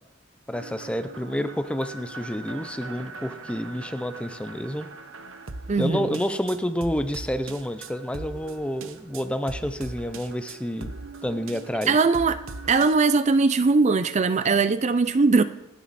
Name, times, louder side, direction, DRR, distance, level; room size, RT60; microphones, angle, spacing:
voice 1, 0.5-4.9 5.8-10.9 11.2-12.0, equal, 5° left, 0.7 m, -29 dB
sound 1, 0.5-12.9, right 3 dB, 75° right, 1.0 m, -41 dB
voice 2, 5.7-6.2 11.9-12.4 12.7-15.4, right 4 dB, 35° right, 0.4 m, -20 dB
27.5 x 9.3 x 4.2 m
head